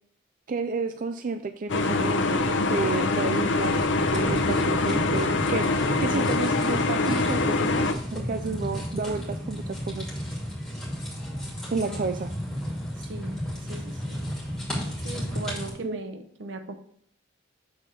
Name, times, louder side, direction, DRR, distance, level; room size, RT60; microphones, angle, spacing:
voice 1, 0.5-10.1 11.7-12.3 15.8-16.0, right 4 dB, 45° right, 8 dB, 0.4 m, -31 dB
sound 1, 1.7-7.9, left 3 dB, 80° left, 0.6 m, -24 dB
sound 2, 3.6-15.7, equal, 5° left, 2.5 m, -33 dB
voice 2, 13.0-14.2 15.0-16.7, right 2 dB, 80° right, 7 dB, 0.8 m, -39 dB
7.0 x 4.2 x 4.8 m, 0.64 s
head